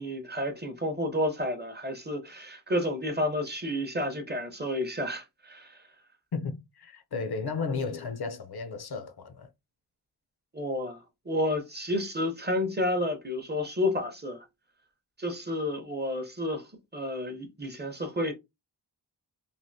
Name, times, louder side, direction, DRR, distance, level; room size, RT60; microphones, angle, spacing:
voice 1, 0.0-5.8 10.5-11.0 11.3-14.4 15.2-18.3, left 1 dB, 25° right, 0.6 m, -31 dB
voice 2, 6.3-9.5, left 4 dB, 60° left, 0.6 m, -34 dB
3.3 x 2.4 x 2.6 m
wide cardioid pair, 90°, 43 cm